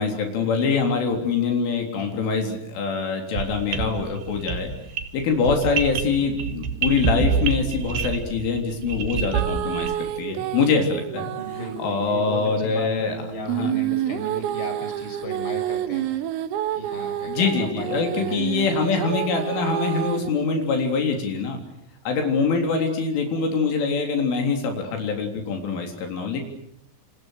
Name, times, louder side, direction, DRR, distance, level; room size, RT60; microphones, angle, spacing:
voice 1, 0.0-4.7 5.1-13.2 13.5-13.8 17.2-21.6 22.1-26.4, left 4 dB, 70° left, 3 dB, 6.0 m, -24 dB
sound 1, 3.3-10.1, right 5 dB, 60° right, 3.2 m, -27 dB
sound 2, 9.3-12.0 13.5-20.3, right 12 dB, 90° right, 4.1 m, -29 dB
voice 2, 11.3-16.0 16.8-17.5 17.8-18.5, equal, 20° left, 5 dB, 6.6 m, -35 dB
28.5 x 28.5 x 6.5 m, 0.73 s
omnidirectional pair, 5.8 m